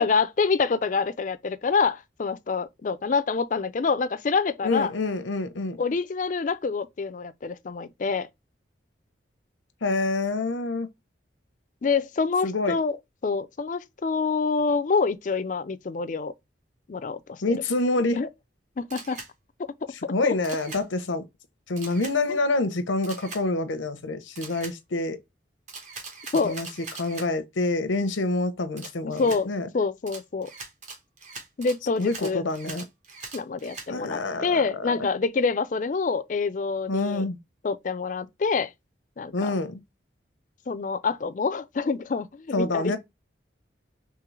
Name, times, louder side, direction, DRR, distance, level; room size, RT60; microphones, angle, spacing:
voice 1, 0.0-4.9 5.8-8.3 11.8-13.0 13.2-16.3 16.9-17.4 18.1-18.3 18.8-19.2 20.0-20.3 22.3-22.4 26.3-26.6 29.2-29.5 29.7-30.5 31.6-32.4 33.3-37.2 37.6-38.7 39.2-39.5 40.7-43.0, left 4 dB, 40° left, 0.4 m, -26 dB
voice 2, 4.6-5.8 9.8-10.9 12.4-12.8 17.4-18.2 20.1-21.2 21.7-25.2 26.4-26.7 27.0-29.7 32.0-32.8 33.9-35.1 36.9-37.4 39.3-39.8 42.5-43.0, left 2 dB, 90° left, 0.7 m, -27 dB
Camera, 18.9-19.3 20.4-20.8 21.8-22.1 23.0-23.4 24.3-24.7 25.7-27.3 28.8-29.4 30.1-33.9, right 4 dB, 40° right, 0.9 m, -41 dB
3.7 x 3.2 x 3.1 m
head